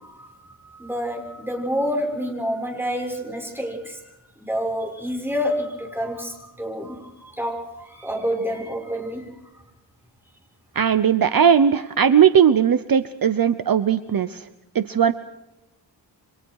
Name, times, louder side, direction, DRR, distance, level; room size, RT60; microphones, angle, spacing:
voice 1, 0.0-4.0 4.4-9.4, equal, 5° right, 1 dB, 6.5 m, -28 dB
voice 2, 10.8-14.4 14.7-15.1, right 8 dB, 50° right, 12 dB, 0.9 m, -18 dB
29.5 x 24.5 x 4.8 m, 0.94 s
wide cardioid pair, 110°, 44 cm